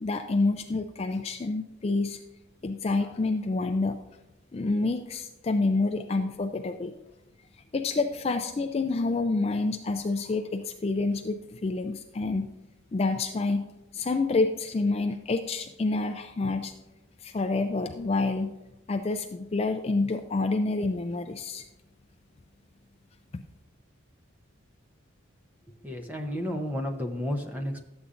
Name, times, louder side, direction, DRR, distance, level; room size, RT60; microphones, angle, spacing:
voice 1, 0.0-2.2 2.6-4.0 4.5-6.9 7.7-12.5 12.9-13.6 13.9-16.7 17.2-18.5 18.9-21.6 23.3-23.4, left 3 dB, 30° left, 6 dB, 0.3 m, -28 dB
voice 2, 25.8-27.8, equal, 10° right, 2 dB, 0.7 m, -32 dB
12.5 x 8.1 x 2.5 m, 0.94 s
head